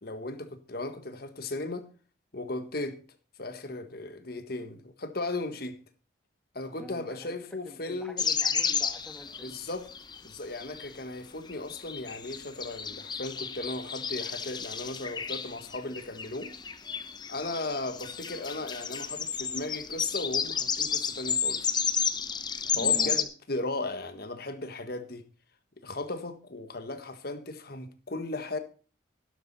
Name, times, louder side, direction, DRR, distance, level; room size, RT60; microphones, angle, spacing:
voice 1, 0.0-1.9 2.3-3.0 3.4-5.8 6.5-8.3 9.4-9.9 10.2-16.5 17.3-21.7 22.7-25.2 25.8-28.6, left 2 dB, 50° left, 1.5 m, -36 dB
voice 2, 6.7-7.4 7.7-9.5 22.7-23.2, left 1 dB, 5° left, 1.7 m, -44 dB
sound 1, 8.2-10.2 10.5-10.9 11.5-23.2, left 6 dB, 20° left, 0.9 m, -31 dB
12.5 x 11.5 x 4.2 m
head